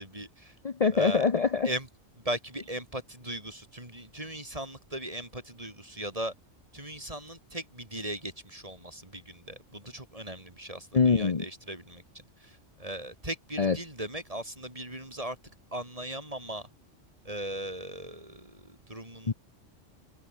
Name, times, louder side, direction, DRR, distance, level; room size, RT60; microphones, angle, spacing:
voice 1, 0.0-0.6 0.9-1.3 1.6-1.9 2.2-6.3 6.7-15.4 15.7-16.7 17.2-19.3, right 1 dB, 30° right, 5.3 m, -38 dB
voice 2, 0.6-1.7 10.9-11.4 13.6-13.8 19.3-19.4, left 5 dB, 35° left, 0.9 m, -24 dB
omnidirectional pair, 1.3 m